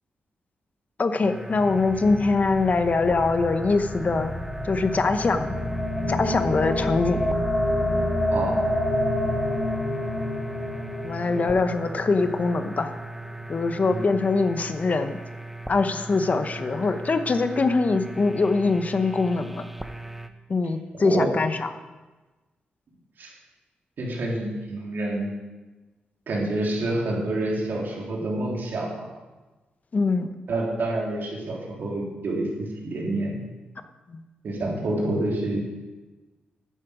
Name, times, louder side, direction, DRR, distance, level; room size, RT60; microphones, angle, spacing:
voice 1, 1.0-4.3 4.6-5.6 6.1-7.3 11.0-12.9 13.5-15.2 15.7-19.6 20.5-21.7 29.9-30.3 34.1-34.2, left 3 dB, 45° left, 9 dB, 0.9 m, -23 dB
sound 1, 1.2-20.3, right 2 dB, 5° right, 0.9 m, -39 dB
sound 2, 1.5-13.8, left 1 dB, 30° left, 2.9 m, -29 dB
voice 2, 13.8-14.2 20.9-21.3 23.2-23.3 24.0-25.3 26.3-29.1 30.5-33.4 34.4-35.6, right 2 dB, 70° right, -2 dB, 3.2 m, -28 dB
11.0 x 9.5 x 5.1 m, 1.2 s
cardioid pair, 60°, 3 cm